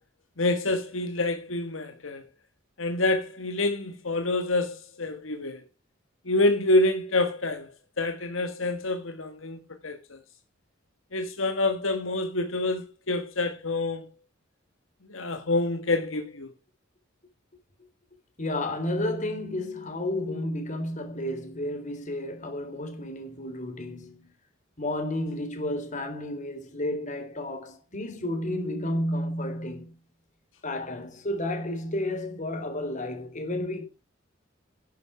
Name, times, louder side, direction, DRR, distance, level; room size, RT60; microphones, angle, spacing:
voice 1, 0.4-2.2 2.8-5.6 6.2-7.7 8.0-10.2 11.1-14.0 15.1-16.5, left 2 dB, 80° left, 1.6 m, -27 dB
voice 2, 18.4-24.3 24.8-29.9 30.6-33.8, left 1 dB, 40° left, 3.7 m, -31 dB
11.5 x 9.5 x 4.9 m
head